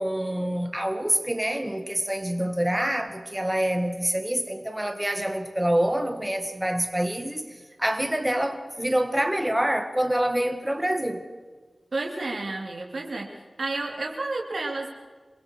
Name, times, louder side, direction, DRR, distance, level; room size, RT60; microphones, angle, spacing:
voice 1, 0.0-7.4 7.8-11.2, right 1 dB, 10° right, 1.9 m, -26 dB
voice 2, 11.9-13.3 13.6-14.9, right 2 dB, 75° right, 3.8 m, -31 dB
27.5 x 22.5 x 4.9 m
wide cardioid pair, 75°, 0 cm